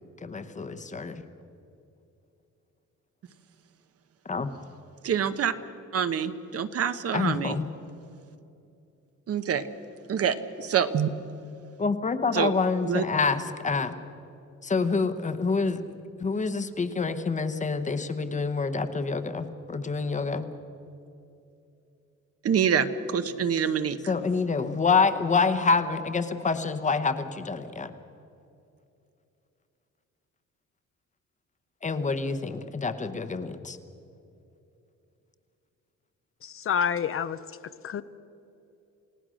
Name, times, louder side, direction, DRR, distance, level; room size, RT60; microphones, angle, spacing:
voice 1, 0.2-1.2 4.2-4.5 7.1-7.7 11.8-14.0 14.6-15.8 16.2-20.5 24.1-27.9 31.8-33.8, left 4 dB, 25° left, 10 dB, 0.9 m, -27 dB
voice 2, 5.0-5.5 5.9-7.6 9.3-9.6 10.1-11.1 12.3-12.5 12.8-13.0 22.4-24.0, right 7 dB, 50° right, 11 dB, 1.0 m, -26 dB
voice 3, 36.4-38.0, left 7 dB, 45° left, 13 dB, 0.6 m, -29 dB
28.5 x 17.5 x 6.3 m, 2.7 s
cardioid pair, 170°, 31 cm